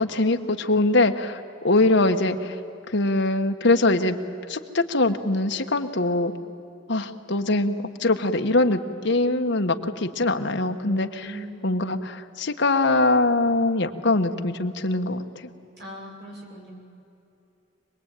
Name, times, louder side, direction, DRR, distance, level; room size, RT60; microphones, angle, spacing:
voice 1, 0.0-2.6 2.9-4.2 4.5-6.3 6.9-11.2 11.6-15.5, left 2 dB, 65° left, 6 dB, 1.5 m, -22 dB
voice 2, 11.2-11.7 15.8-16.7, right 1 dB, 60° right, -1 dB, 7.1 m, -40 dB
26.5 x 20.5 x 9.2 m, 2.9 s
head